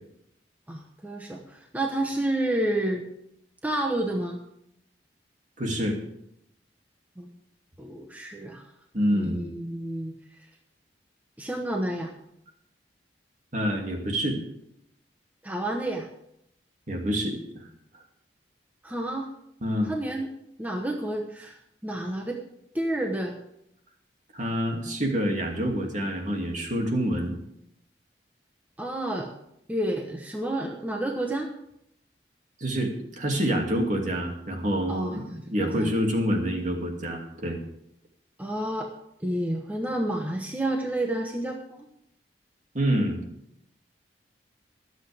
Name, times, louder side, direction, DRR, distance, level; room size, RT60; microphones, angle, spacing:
voice 1, 0.7-3.0 3.6-4.4 7.2-7.3 7.8-8.7 9.1-10.1 11.4-12.1 15.4-16.1 18.8-19.3 19.8-22.4 22.7-23.4 28.8-29.3 29.7-31.5 34.9-35.9 38.4-38.9 39.2-41.8, right 1 dB, 10° right, 2 dB, 1.0 m, -30 dB
voice 2, 5.6-6.0 8.9-9.4 13.5-14.4 16.9-17.4 19.6-19.9 24.3-27.3 32.6-37.6 42.7-43.2, equal, 45° right, 1 dB, 2.5 m, -27 dB
23.5 x 7.9 x 3.5 m, 0.76 s
head